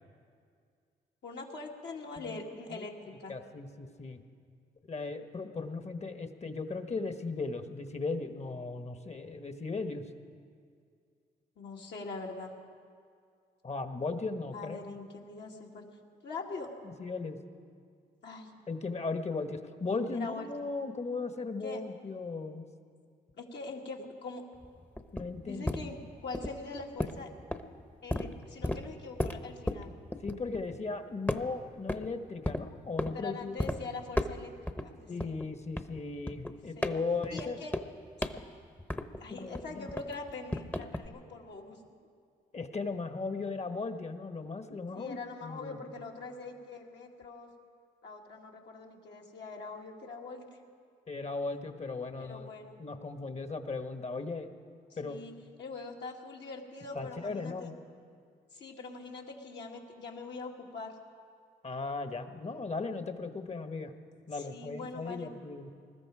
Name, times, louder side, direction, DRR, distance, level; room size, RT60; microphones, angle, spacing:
voice 1, 1.2-3.4 11.6-12.6 14.5-15.9 16.2-16.7 18.2-18.6 20.1-20.7 21.6-21.8 23.3-24.4 25.4-27.3 28.0-29.9 33.1-34.5 34.8-35.3 36.5-37.0 37.3-37.7 39.2-41.8 44.9-47.5 48.0-50.4 52.2-52.8 55.0-55.3 55.6-57.7 58.5-61.0 64.3-65.3, left 3 dB, 65° left, -1 dB, 2.2 m, -43 dB
voice 2, 3.3-4.2 4.9-10.1 13.6-14.8 16.8-17.4 18.7-22.7 25.1-25.9 30.2-33.6 35.1-37.6 39.4-39.9 42.5-46.0 51.1-52.5 52.8-54.5 55.0-55.2 56.9-57.7 61.6-63.9 64.3-65.7, left 3 dB, 35° left, 8 dB, 1.4 m, -37 dB
sound 1, 24.6-30.9 31.3-32.1 32.4-33.1 33.6-33.8 34.1-34.9 35.2-39.3 39.5-41.1, left 1 dB, 10° left, 1.0 m, -35 dB
21.0 x 13.5 x 4.9 m, 2.2 s
supercardioid pair, 55°, 19 cm